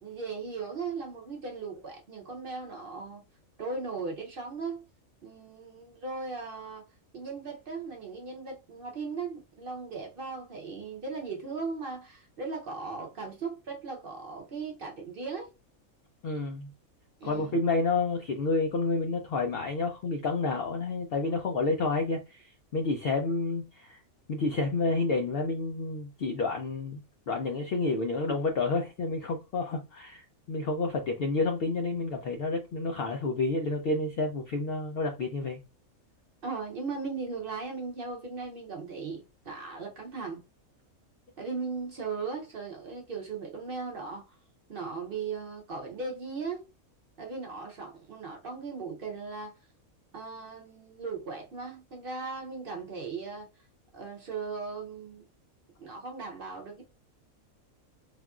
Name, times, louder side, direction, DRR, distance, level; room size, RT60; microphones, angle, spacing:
voice 1, 0.0-3.2 3.6-4.9 5.2-6.8 7.1-15.5 17.2-17.5 36.4-40.4 41.4-44.4 44.7-46.7 47.2-49.5 50.1-53.6 53.9-55.2 55.8-56.8, right 4 dB, 55° right, 0.6 m, -38 dB
voice 2, 16.2-16.7 17.2-24.0 24.3-27.0 27.3-35.6, left 3 dB, 75° left, 0.5 m, -29 dB
3.4 x 2.4 x 2.3 m
omnidirectional pair, 1.5 m